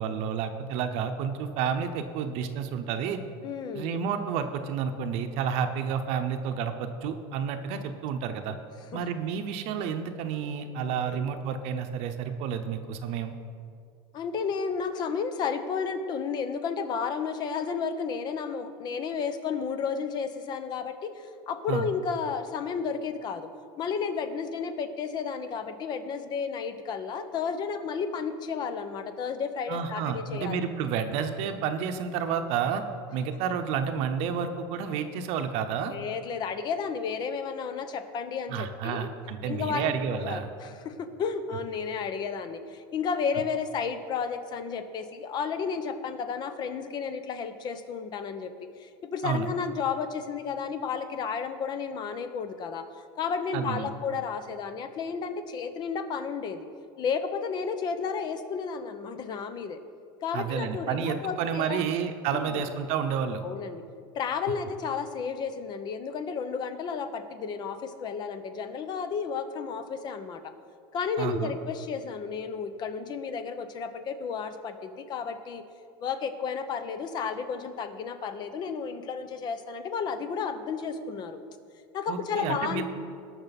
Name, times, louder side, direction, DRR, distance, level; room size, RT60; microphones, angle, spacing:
voice 1, 0.0-3.2 3.7-8.6 8.9-13.3 21.7-21.8 29.7-32.8 33.1-35.9 38.5-40.5 49.2-49.5 53.5-53.9 60.3-63.4 71.2-71.5 82.1-82.8, right 7 dB, 55° right, 7 dB, 0.8 m, -30 dB
voice 2, 3.4-3.9 8.9-9.0 11.0-11.3 14.1-23.5 23.8-30.9 35.9-39.1 39.4-39.9 40.2-48.5 48.8-52.9 53.2-56.7 57.0-59.8 60.2-61.9 62.4-62.7 63.4-63.8 64.1-70.5 70.9-75.6 76.0-81.4 81.9-82.8, left 6 dB, 35° left, 10 dB, 0.8 m, -32 dB
19.0 x 6.3 x 4.1 m, 2.4 s
supercardioid pair, 145°, 12 cm